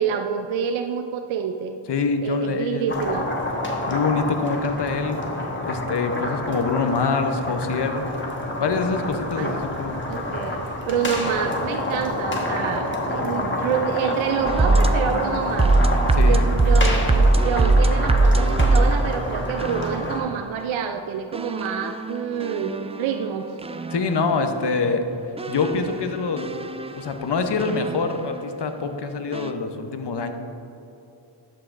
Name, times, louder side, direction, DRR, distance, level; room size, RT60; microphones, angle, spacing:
voice 1, 0.0-1.8 2.2-3.3 9.3-9.6 10.0-15.7 16.2-23.5, right 7 dB, 70° right, 6 dB, 0.5 m, -27 dB
voice 2, 1.9-2.9 3.9-5.2 5.6-8.1 8.6-10.0 16.1-16.4 23.9-25.1 25.5-26.5 26.9-30.3, left 4 dB, 55° left, 6 dB, 0.8 m, -25 dB
sound 1, 2.9-20.2, left 1 dB, 25° left, 1.4 m, -28 dB
sound 2, 14.4-20.5 21.3-24.6 25.4-28.5 29.3-29.5, right 2 dB, 15° right, 0.3 m, -22 dB
11.5 x 5.7 x 2.5 m, 2.9 s
cardioid pair, 40°, 48 cm